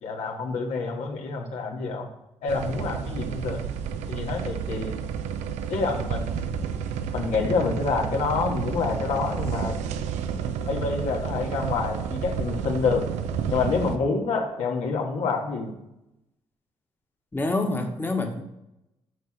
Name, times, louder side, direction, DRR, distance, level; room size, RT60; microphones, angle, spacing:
voice 1, 0.0-2.1 2.4-3.6 4.1-4.9 5.7-6.5 7.1-9.8 10.6-13.0 13.5-15.7, left 4 dB, 70° left, 0 dB, 1.6 m, -27 dB
sound 1, 2.5-14.0, right 7 dB, 80° right, 0.6 m, -31 dB
voice 2, 17.3-18.4, left 2 dB, 15° left, 3 dB, 1.4 m, -26 dB
6.7 x 4.7 x 5.7 m, 0.89 s
supercardioid pair, 60°, 12 cm